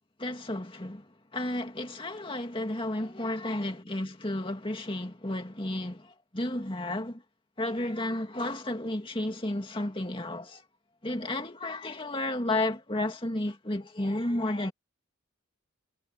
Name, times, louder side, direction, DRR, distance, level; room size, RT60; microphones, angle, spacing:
voice 1, 0.2-1.0 1.3-7.2 7.6-10.6 11.0-14.7, left 1 dB, 25° left, 2.4 m, -32 dB
head